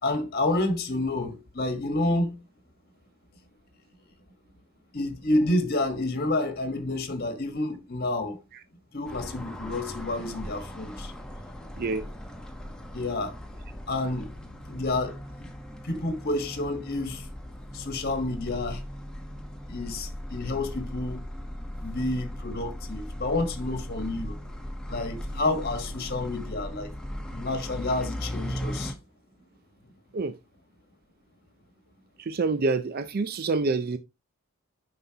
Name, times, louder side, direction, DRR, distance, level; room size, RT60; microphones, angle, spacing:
voice 1, 0.0-2.4 4.9-8.4 8.9-11.1 12.9-13.3 13.9-14.3 14.7-15.5 15.8-17.3 17.7-18.8 19.7-21.3 21.8-24.4 24.9-26.9 27.3-28.9, left 2 dB, 45° left, 1.3 m, -29 dB
sound 1, 9.0-28.9, equal, 5° left, 1.0 m, -38 dB
voice 2, 11.8-12.1 30.1-30.3 32.2-34.0, right 3 dB, 45° right, 0.5 m, -27 dB
9.4 x 5.6 x 2.8 m
head